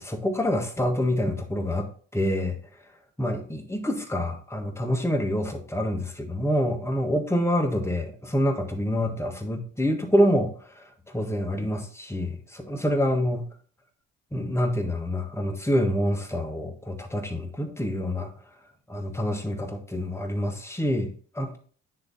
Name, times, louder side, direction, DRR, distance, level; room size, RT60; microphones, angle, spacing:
voice 1, 0.0-2.5 3.2-13.4 14.3-18.3 18.9-21.6, equal, 10° left, 3 dB, 1.5 m, -27 dB
9.8 x 3.3 x 4.1 m, 0.44 s
cardioid pair, 90°, 30 cm